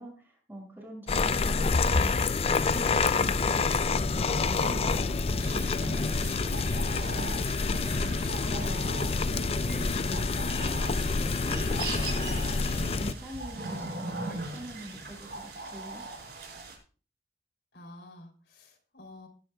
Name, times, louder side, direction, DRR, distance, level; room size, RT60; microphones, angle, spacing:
voice 1, 0.0-2.1 2.6-10.2 10.7-10.8 11.2-16.0, right 1 dB, 10° right, -1 dB, 6.9 m, -44 dB
sound 1, 1.1-13.1, left 4 dB, 35° left, 0.5 m, -27 dB
voice 2, 1.3-1.7 17.7-19.3, left 1 dB, 75° left, 2 dB, 3.4 m, -50 dB
sound 2, 5.4-16.7, right 3 dB, 65° right, 5.0 m, -40 dB
19.5 x 11.5 x 2.4 m, 0.37 s
head